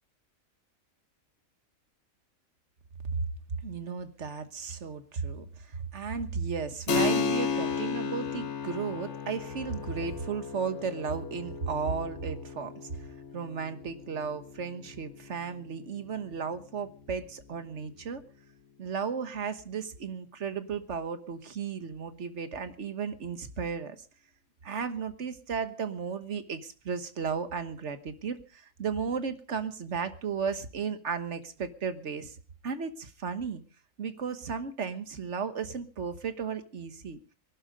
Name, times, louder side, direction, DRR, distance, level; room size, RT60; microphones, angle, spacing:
voice 1, 3.6-12.9 13.3-18.2 18.8-24.0 24.6-32.4 32.6-33.6 34.0-37.2, right 6 dB, 60° right, 10 dB, 1.6 m, -34 dB
Keyboard (musical), 6.9-17.1, left 5 dB, 60° left, 1.4 m, -35 dB
21.5 x 12.0 x 5.1 m, 0.39 s
omnidirectional pair, 1.4 m